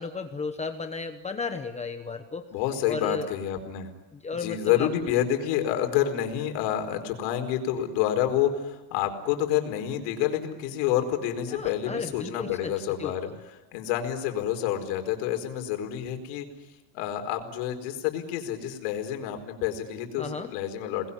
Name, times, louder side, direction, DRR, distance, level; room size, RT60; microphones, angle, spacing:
voice 1, 0.0-2.5 2.9-3.3 4.1-5.2 6.0-6.1 11.5-13.4 20.2-20.5, left 4 dB, 15° left, 6 dB, 1.0 m, -34 dB
voice 2, 2.5-3.9 4.3-16.5 16.9-21.1, left 11 dB, 85° left, 5 dB, 4.7 m, -28 dB
29.0 x 20.5 x 9.9 m, 1.1 s
cardioid pair, 170°, 48 cm